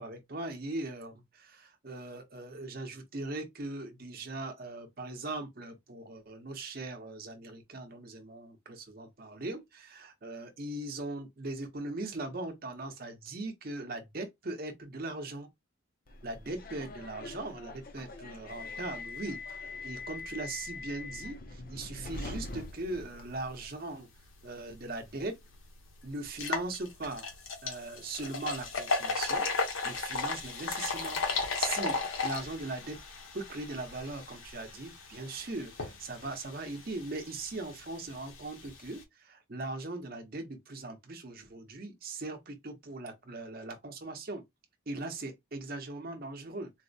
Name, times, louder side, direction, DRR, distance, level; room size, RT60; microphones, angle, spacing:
voice 1, 0.0-15.5 16.2-24.1 24.4-25.4 26.0-27.3 27.6-32.0 32.2-33.0 33.3-44.4 44.9-46.7, right 2 dB, 45° right, 0.7 m, -40 dB
Subway metro underground, 16.1-23.7, left 3 dB, 45° left, 0.5 m, -43 dB
sound 1, 25.0-25.1 25.5-25.6 26.3-39.0, left 4 dB, 75° left, 1.0 m, -36 dB
4.0 x 2.1 x 2.5 m
head